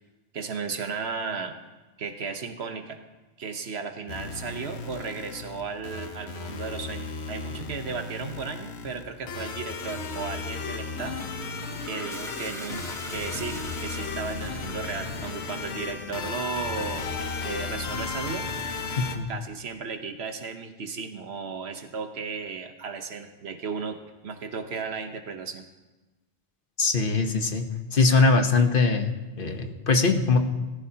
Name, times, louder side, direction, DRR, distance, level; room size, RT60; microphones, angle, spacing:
voice 1, 0.3-1.6 2.0-3.0 3.4-11.2 11.9-18.5 19.3-25.6, right 5 dB, 75° right, 7 dB, 1.2 m, -35 dB
sound 1, 4.1-19.2, left 4 dB, 80° left, 1.2 m, -35 dB
Toilet flush, 10.9-15.2, equal, 5° left, 1.0 m, -42 dB
voice 2, 19.0-19.3 26.8-27.6 27.9-30.4, left 3 dB, 55° left, 5 dB, 1.2 m, -22 dB
18.0 x 14.5 x 2.9 m, 1.2 s
omnidirectional pair, 1.1 m